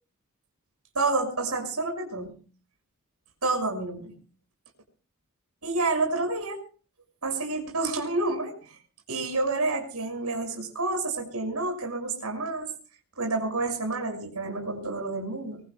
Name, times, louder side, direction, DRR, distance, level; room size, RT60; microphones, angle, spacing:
voice 1, 0.9-2.3 3.4-4.1 5.6-6.6 7.2-8.8 9.1-12.7 13.2-15.6, right 3 dB, 90° right, 4 dB, 6.3 m, -29 dB
24.5 x 23.5 x 2.3 m, 0.39 s
head